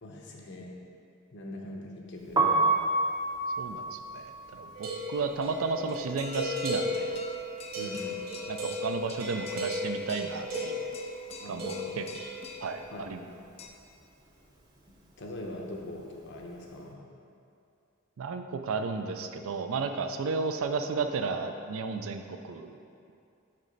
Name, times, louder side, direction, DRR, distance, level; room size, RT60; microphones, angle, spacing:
voice 1, 0.0-0.7 1.3-2.4 7.8-8.2 11.4-12.0 12.9-13.1 13.4-13.5 15.2-17.0, left 1 dB, 55° left, -1 dB, 0.8 m, -42 dB
Piano, 2.2-8.2 8.4-10.0 10.3-16.7, right 2 dB, 20° right, 0.6 m, -32 dB
voice 2, 3.6-7.2 8.5-10.9 11.5-12.0 12.6-13.2 18.2-22.8, right 4 dB, 75° right, 7 dB, 0.4 m, -33 dB
sound 1, 4.7-11.0 11.6-12.4, equal, 45° right, 1.3 m, -35 dB
sound 2, 5.7-13.7, left 3 dB, 30° left, 0.3 m, -46 dB
6.5 x 3.2 x 5.2 m, 2.5 s
head